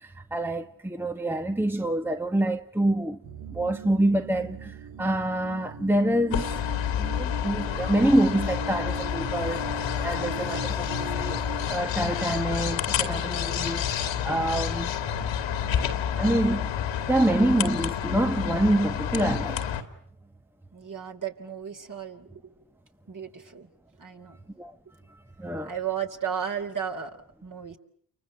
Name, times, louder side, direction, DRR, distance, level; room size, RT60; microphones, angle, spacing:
voice 1, 0.0-3.2 3.5-6.6 7.0-11.4 11.7-13.8 14.2-14.9 16.2-16.7 17.1-19.6 24.6-24.7 25.4-25.7, right 1 dB, 5° right, 1.2 m, -26 dB
sound 1, 3.2-11.7, right 7 dB, 75° right, 1.5 m, -40 dB
sound 2, 6.3-19.8, left 9 dB, 80° left, 2.4 m, -29 dB
voice 2, 20.7-22.5 23.1-23.7 24.0-24.4 25.6-27.8, right 8 dB, 45° right, 3.8 m, -34 dB
30.0 x 24.5 x 7.8 m
supercardioid pair, 50°, 45 cm